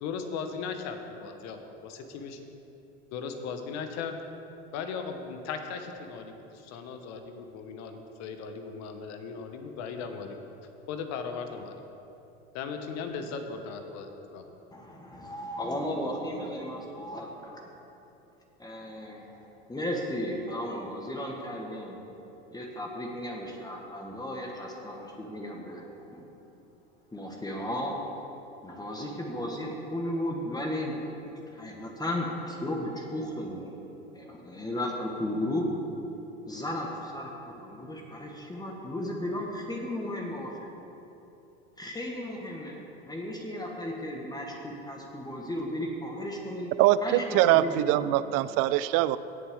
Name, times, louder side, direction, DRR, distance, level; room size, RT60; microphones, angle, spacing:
voice 1, 0.0-2.4 3.1-4.2 4.7-10.4 10.9-11.8 12.5-14.4, left 5 dB, 55° left, 6 dB, 1.3 m, -37 dB
voice 2, 14.7-17.7 18.6-22.0 22.5-26.2 27.1-27.9 28.6-31.0 31.5-33.8 34.1-35.7 36.5-40.7 41.8-46.7 47.0-48.2, left 1 dB, 10° left, 0 dB, 1.5 m, -35 dB
voice 3, 46.8-49.2, right 14 dB, 50° right, 16 dB, 0.4 m, -23 dB
18.0 x 7.1 x 3.7 m, 2.9 s
hypercardioid pair, 90°, 32 cm